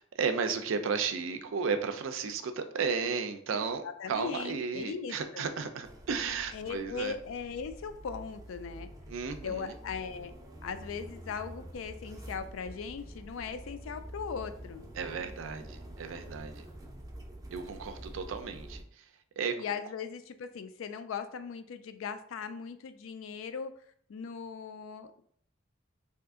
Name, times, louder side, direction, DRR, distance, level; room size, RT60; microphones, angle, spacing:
voice 1, 0.2-7.2 9.1-9.7 14.9-16.6 17.5-18.8 19.4-19.5, right 5 dB, 80° right, 8 dB, 0.4 m, -34 dB
voice 2, 3.8-5.5 6.5-8.9 9.4-10.3 10.6-14.9 19.6-23.7 24.1-25.1, left 6 dB, 85° left, 10 dB, 0.3 m, -39 dB
sound 1, 5.8-18.8, right 1 dB, 15° right, 0.4 m, -47 dB
2.8 x 2.4 x 3.6 m, 0.64 s
head